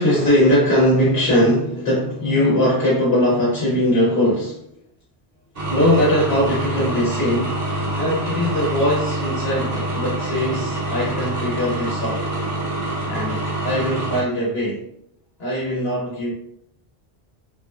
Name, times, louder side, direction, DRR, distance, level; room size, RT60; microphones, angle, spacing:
voice 1, 0.0-4.7 5.7-7.5 8.0-12.3 13.1-14.8 15.4-16.3, left 1 dB, 75° left, -6 dB, 1.0 m, -20 dB
sound 1, 5.5-14.2, right 2 dB, 60° right, 1.0 m, -26 dB
3.0 x 2.1 x 2.3 m, 0.72 s
omnidirectional pair, 1.0 m